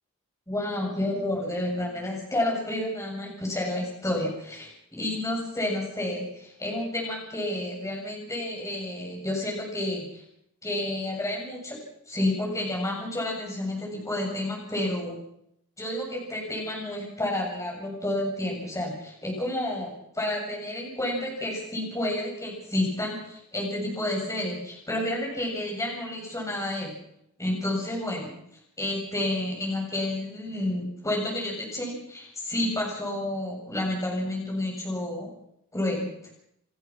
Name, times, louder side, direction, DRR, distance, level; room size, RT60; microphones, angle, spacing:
voice 1, 0.5-10.2 10.6-11.8 12.1-15.2 15.8-26.9 27.4-28.3 28.8-35.3 35.7-36.1, left 1 dB, 15° left, -1 dB, 7.6 m, -30 dB
29.5 x 14.0 x 6.4 m, 0.76 s
head